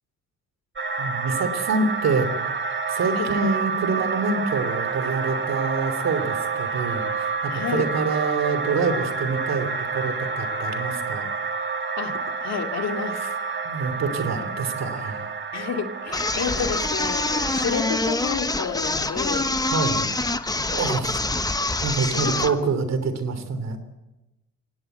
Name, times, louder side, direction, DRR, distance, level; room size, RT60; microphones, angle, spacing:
sound 1, 0.8-17.9, right 5 dB, 40° right, 2.1 m, -29 dB
voice 1, 1.0-2.3 2.9-9.7 9.9-11.2 13.6-15.3 19.7-20.1 20.7-21.2 21.8-23.8, right 4 dB, 60° right, 11 dB, 3.2 m, -26 dB
voice 2, 7.5-7.9 12.0-13.4 15.5-19.5 20.5-20.9 22.1-22.4 22.6-22.7, left 6 dB, 60° left, 5 dB, 2.4 m, -30 dB
sound 2, 16.1-22.6, left 2 dB, 10° left, 1.2 m, -25 dB
23.5 x 17.5 x 8.0 m, 1.0 s
cardioid pair, 90°, 30 cm